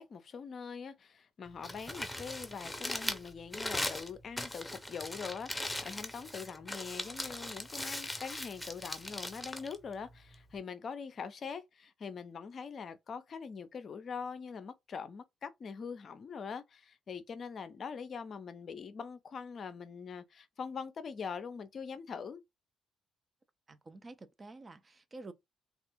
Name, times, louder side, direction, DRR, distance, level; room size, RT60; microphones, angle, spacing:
voice 1, 0.0-22.4, left 6 dB, 50° left, 0.4 m, -43 dB
Crumpling crinkling, 1.5-10.6, left 1 dB, 10° left, 0.7 m, -40 dB
voice 2, 23.7-25.3, right 2 dB, 30° right, 0.5 m, -49 dB
3.3 x 2.4 x 2.9 m
figure-of-eight pair, 45°, 0 cm